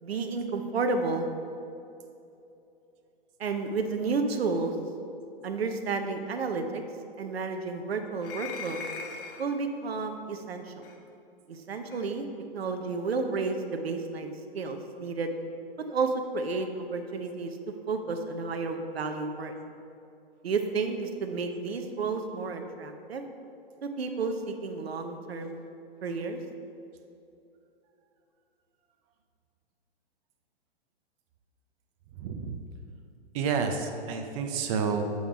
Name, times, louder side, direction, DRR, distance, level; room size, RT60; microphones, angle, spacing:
voice 1, 0.0-1.3 3.4-4.7 5.4-6.8 7.2-8.8 9.4-10.9 11.5-12.3 12.5-15.3 15.9-17.6 17.9-19.5 20.4-23.2 23.8-25.6 26.0-26.4, right 4 dB, 80° right, 6 dB, 0.7 m, -31 dB
sound 1, 8.2-9.5 10.8-11.0 11.9-12.1, left 5 dB, 60° left, 0.9 m, -40 dB
voice 2, 32.2-32.6 33.3-35.0, right 6 dB, 35° right, 5 dB, 0.6 m, -29 dB
7.6 x 3.6 x 4.9 m, 2.7 s
hypercardioid pair, 115°, 30 cm